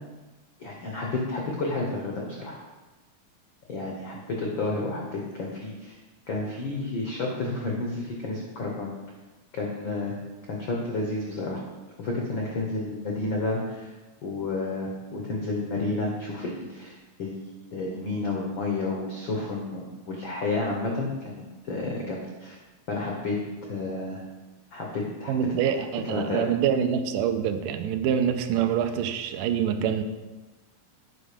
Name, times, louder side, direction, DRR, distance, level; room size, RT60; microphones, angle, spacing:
voice 1, 0.6-2.6 3.7-6.0 6.3-8.9 9.5-10.1 10.5-11.6 12.0-13.9 14.2-17.3 17.7-22.6 22.9-24.2 24.7-25.3 26.1-26.4, left 2 dB, 80° left, -1 dB, 1.0 m, -31 dB
voice 2, 25.3-30.0, right 8 dB, 85° right, 7 dB, 2.1 m, -25 dB
9.3 x 5.2 x 5.0 m, 1.2 s
omnidirectional pair, 3.9 m